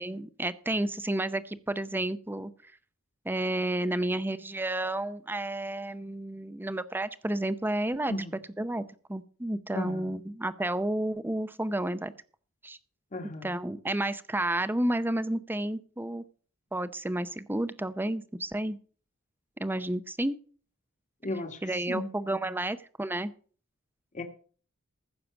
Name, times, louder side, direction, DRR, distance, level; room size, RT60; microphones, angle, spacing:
voice 1, 0.0-2.7 3.2-8.1 8.6-8.8 9.1-12.1 12.6-12.8 13.4-16.2 16.7-18.8 19.6-20.4 21.6-23.3, right 1 dB, 10° right, 0.6 m, -31 dB
voice 2, 9.7-10.1 13.1-13.5 21.2-21.6 21.9-22.1 24.1-24.2, left 1 dB, 35° left, 1.4 m, -34 dB
15.0 x 6.7 x 5.8 m
head